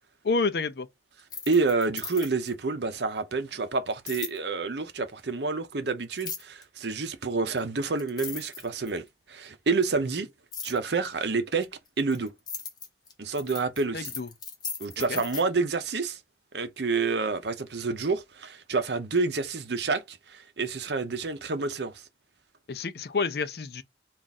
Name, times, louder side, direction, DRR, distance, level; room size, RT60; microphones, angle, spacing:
voice 1, 0.2-0.9 13.9-14.3 15.1-15.2 22.7-23.8, left 4 dB, 60° left, 0.5 m, -29 dB
sound 1, 1.2-2.5 4.1-4.4 6.2-6.6 7.6-7.7 8.0-9.1 10.5-10.8 11.6-15.4, left 6 dB, 25° left, 0.8 m, -38 dB
voice 2, 1.5-10.3 10.6-11.7 12.0-12.3 13.2-14.1 14.8-16.2 16.5-22.0, right 4 dB, 70° right, 0.7 m, -28 dB
3.6 x 2.5 x 4.0 m
head